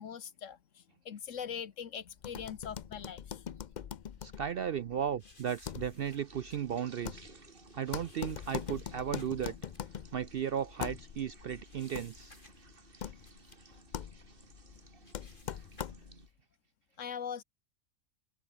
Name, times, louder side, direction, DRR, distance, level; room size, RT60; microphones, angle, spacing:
voice 1, 0.0-3.5 17.0-17.4, left 8 dB, 65° left, 1.4 m, -42 dB
sound 1, 2.2-16.3, left 8 dB, 50° left, 0.5 m, -43 dB
voice 2, 4.2-7.2 7.8-9.5 10.1-12.4, right 8 dB, 60° right, 0.6 m, -35 dB
sound 2, 5.2-11.1 11.3-12.8 13.1-13.8 14.4-14.5 14.8-16.1, left 2 dB, 35° left, 3.6 m, -61 dB
sound 3, 6.0-16.3, right 4 dB, 40° right, 2.1 m, -59 dB
open air
omnidirectional pair, 1.4 m